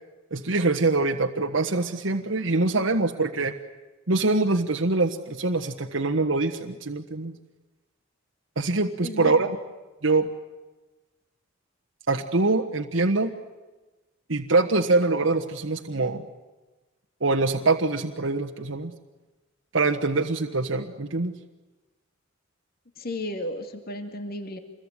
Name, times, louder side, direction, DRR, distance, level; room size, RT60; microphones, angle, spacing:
voice 1, 0.3-3.5 4.1-7.3 8.6-9.5 10.0-10.3 12.1-13.3 14.3-16.2 17.2-18.9 19.7-21.3, right 3 dB, 75° right, 3 dB, 1.4 m, -24 dB
voice 2, 9.0-9.3 23.0-24.6, left 1 dB, 50° left, 6 dB, 2.4 m, -33 dB
27.0 x 22.0 x 9.8 m, 1.2 s
head